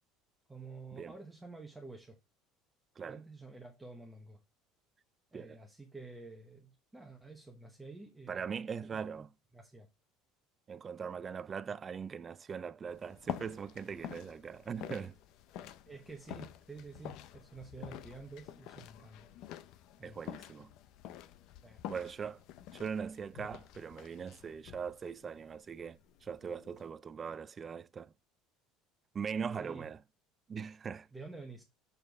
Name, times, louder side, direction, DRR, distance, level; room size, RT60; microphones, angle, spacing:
voice 1, 0.5-2.2 3.0-4.4 5.3-9.3 9.5-9.9 15.9-19.3 20.0-20.2 21.6-21.8 29.6-29.9 31.1-31.6, right 3 dB, 10° right, 1.0 m, -50 dB
voice 2, 8.3-9.3 10.7-15.2 20.0-20.7 21.9-22.4 22.7-28.1 29.1-30.0 30.5-31.1, right 6 dB, 25° right, 0.3 m, -41 dB
sound 1, 12.9-26.9, left 11 dB, 60° left, 0.5 m, -48 dB
6.8 x 4.4 x 3.5 m
cardioid pair, 145°, 0 cm